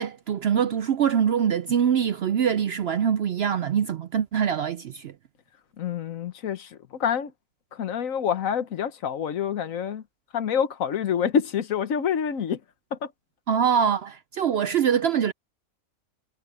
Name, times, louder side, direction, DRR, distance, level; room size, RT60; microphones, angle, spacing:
voice 1, 0.0-5.1 13.5-15.3, right 8 dB, 65° right, 0.6 m, -24 dB
voice 2, 5.8-7.3 7.7-10.0 10.3-12.6 12.9-13.1, left 8 dB, 70° left, 1.4 m, -27 dB
omnidirectional pair, 1.5 m